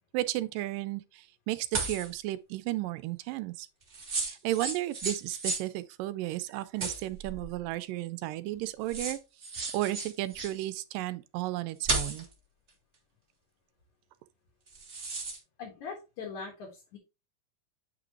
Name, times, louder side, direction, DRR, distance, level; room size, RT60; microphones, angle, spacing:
voice 1, 0.1-3.7 4.2-9.2 9.7-12.3, right 16 dB, 85° right, 2.2 m, -33 dB
sound 1, 1.7-2.1 3.9-5.7 6.8-7.5 8.5-8.6 8.9-10.6 11.8-12.3 14.7-15.4, right 3 dB, 40° right, 0.9 m, -34 dB
voice 2, 15.6-17.0, left 5 dB, 65° left, 2.8 m, -41 dB
8.6 x 5.0 x 3.0 m
omnidirectional pair, 3.9 m